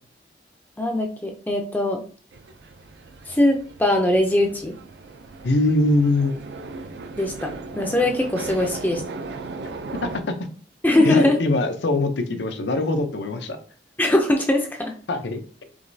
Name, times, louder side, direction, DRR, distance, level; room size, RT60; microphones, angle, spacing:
voice 1, 0.8-2.0 3.2-4.7 7.2-9.0 10.8-11.4 14.0-14.9, left 1 dB, 10° left, 2 dB, 0.4 m, -21 dB
sound 1, 2.3-10.2, right 3 dB, 75° right, 0.4 m, -37 dB
voice 2, 5.4-6.3 10.0-10.4 11.0-13.6 15.1-15.6, left 2 dB, 85° left, 7 dB, 0.6 m, -22 dB
4.9 x 3.0 x 2.6 m, 0.41 s
head